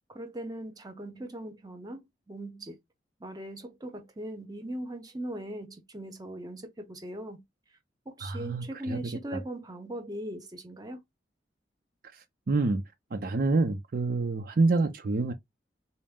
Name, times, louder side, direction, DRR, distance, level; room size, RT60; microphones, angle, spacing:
voice 1, 0.1-2.8 3.2-7.4 8.1-11.0, right 1 dB, 20° right, 0.7 m, -39 dB
voice 2, 8.2-9.0 12.1-12.8 13.1-15.3, right 3 dB, 50° right, 0.5 m, -27 dB
4.1 x 2.1 x 3.6 m
head